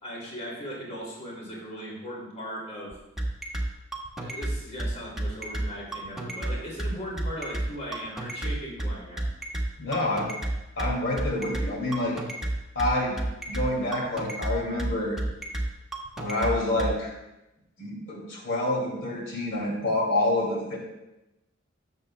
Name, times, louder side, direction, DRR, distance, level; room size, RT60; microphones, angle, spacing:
voice 1, 0.0-3.0 4.2-9.3, equal, 35° left, -4 dB, 2.6 m, -38 dB
sound 1, 2.9-16.9, right 1 dB, ahead, 1.2 m, -30 dB
voice 2, 9.8-10.3 10.8-12.2 12.8-13.2 13.5-15.2 16.2-17.1 17.8-20.8, left 1 dB, 75° left, -3 dB, 2.3 m, -27 dB
18.5 x 6.7 x 2.2 m, 0.97 s
head